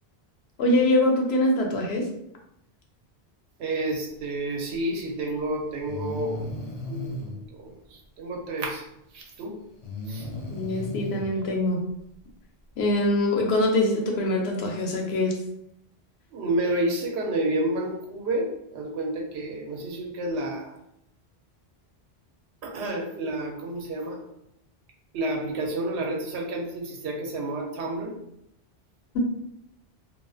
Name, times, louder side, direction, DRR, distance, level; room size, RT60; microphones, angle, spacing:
voice 1, 0.6-2.0 10.5-11.8 12.8-15.3, left 1 dB, 75° left, 1 dB, 0.8 m, -23 dB
voice 2, 3.6-6.4 6.9-7.7 8.2-8.8 9.1-9.6 10.1-10.2 16.3-20.7 22.6-24.2 25.1-28.1, right 1 dB, 85° right, 0 dB, 0.9 m, -30 dB
Breathing, 5.0-5.1 5.8-7.3 9.8-11.3, left 2 dB, 55° left, 0.5 m, -35 dB
2.4 x 2.4 x 2.3 m, 0.78 s
omnidirectional pair, 1.1 m